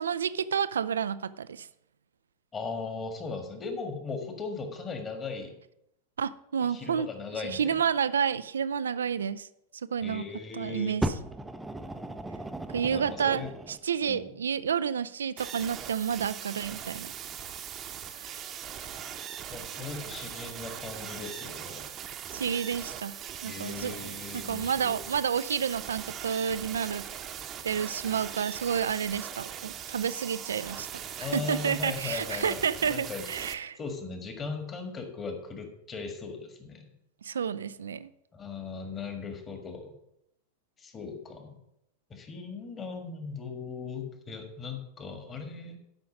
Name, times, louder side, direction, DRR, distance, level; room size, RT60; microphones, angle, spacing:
voice 1, 0.0-1.7 6.2-7.1 7.4-9.5 9.9-10.2 10.5-11.1 12.7-13.4 13.7-17.1 18.2-18.4 22.3-27.1 27.6-33.8 37.2-38.1, right 7 dB, 70° right, 0.4 m, -30 dB
voice 2, 2.5-5.5 6.7-7.8 10.0-11.0 12.8-13.5 14.0-14.3 19.5-22.0 23.4-25.0 31.2-36.9 38.3-39.9 40.8-41.6 42.1-45.8, left 4 dB, 25° left, 1.8 m, -38 dB
Fire, 11.0-13.8 14.7-14.8, right 1 dB, 5° right, 0.6 m, -35 dB
sound 1, 15.4-33.5, right 9 dB, 30° right, 0.9 m, -40 dB
11.5 x 5.7 x 5.2 m
figure-of-eight pair, 90°, 0 cm